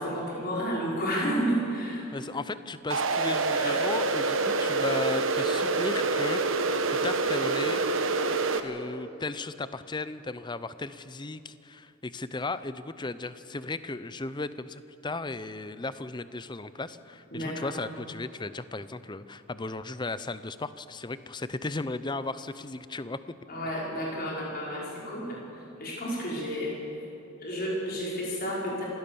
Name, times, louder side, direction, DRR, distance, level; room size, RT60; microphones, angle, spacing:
voice 1, 0.0-2.2 3.5-3.8 17.3-17.7 23.5-26.8 27.4-28.8, equal, 45° left, -4 dB, 5.5 m, -31 dB
voice 2, 2.1-7.8 8.6-23.2, left 3 dB, 20° left, 14 dB, 0.6 m, -35 dB
sound 1, 2.9-8.6, right 3 dB, 65° right, 1.3 m, -26 dB
26.5 x 17.0 x 7.0 m, 2.7 s
head